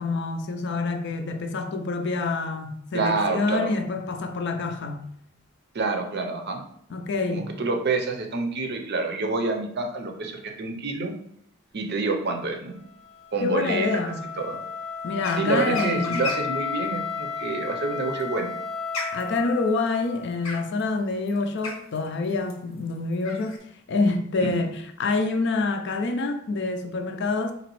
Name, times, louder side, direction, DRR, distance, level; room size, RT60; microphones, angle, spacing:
voice 1, 0.0-5.1 6.9-7.5 13.4-14.2 15.0-16.3 19.1-23.6 23.9-24.7 25.0-27.5, left 3 dB, 55° left, 0.4 m, -27 dB
voice 2, 2.9-3.8 5.7-6.6 7.3-11.1 11.7-12.8 13.3-13.9 14.4-14.6 15.4-18.5 24.4-24.5, right 3 dB, 50° right, 0.6 m, -27 dB
Wind instrument woodwind instrument, 12.7-20.8, left 5 dB, ahead, 0.7 m, -33 dB
sound 1, 15.2-16.6 18.0-23.6, left 3 dB, 85° left, 0.8 m, -36 dB
4.0 x 2.9 x 3.0 m
head